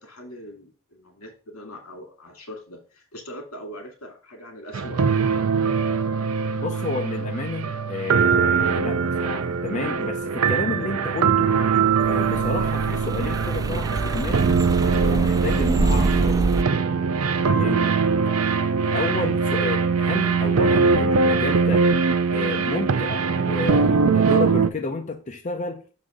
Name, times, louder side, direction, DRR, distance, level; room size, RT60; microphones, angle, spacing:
voice 1, 0.0-5.3 17.3-17.7, equal, 80° left, 2.2 m, -41 dB
sound 1, 4.7-24.7, right 5 dB, 80° right, 0.5 m, -22 dB
voice 2, 6.5-11.5 12.1-16.7 17.5-17.9 18.9-21.9 22.3-25.8, left 3 dB, 35° left, 0.6 m, -31 dB
sound 2, 11.7-16.6, right 2 dB, 15° right, 0.3 m, -26 dB
6.3 x 4.1 x 4.9 m
head